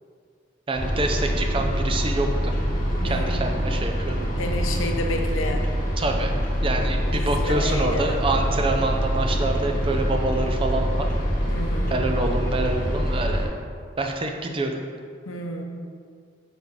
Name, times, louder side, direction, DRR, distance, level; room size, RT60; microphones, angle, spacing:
sound 1, 0.7-13.4, equal, 40° left, 1.5 m, -25 dB
voice 1, 0.7-2.5 3.0-4.3 6.0-6.3 6.6-11.1 11.9-13.5 14.0-14.8, right 2 dB, 25° right, 4 dB, 0.5 m, -26 dB
voice 2, 3.0-3.6 4.4-5.7 7.1-8.2 11.5-12.0 15.3-15.6, left 1 dB, 90° left, 3 dB, 0.7 m, -31 dB
6.2 x 5.3 x 3.6 m, 2.1 s
head